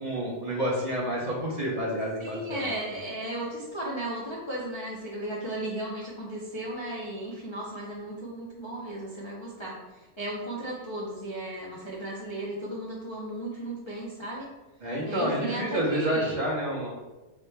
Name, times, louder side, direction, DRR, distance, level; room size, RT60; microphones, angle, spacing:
voice 1, 0.0-2.7 14.8-16.9, equal, 35° right, -5 dB, 0.9 m, -29 dB
voice 2, 2.2-14.5 15.0-16.4, right 1 dB, 35° left, -6 dB, 0.4 m, -35 dB
4.9 x 4.8 x 2.3 m, 1.1 s
omnidirectional pair, 1.6 m